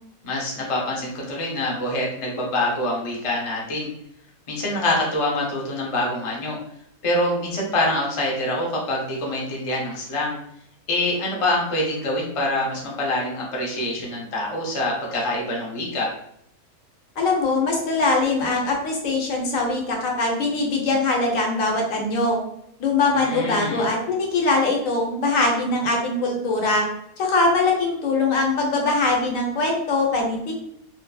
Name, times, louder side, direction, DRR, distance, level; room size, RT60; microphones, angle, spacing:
voice 1, 0.2-3.9 4.5-6.6 7.0-10.4 10.9-16.1 23.1-23.9, left 1 dB, 55° left, -2 dB, 0.3 m, -25 dB
voice 2, 17.2-22.4 22.8-26.9 27.2-30.5, left 3 dB, 70° left, 0 dB, 1.0 m, -22 dB
2.7 x 2.6 x 2.2 m, 0.74 s
omnidirectional pair, 1.5 m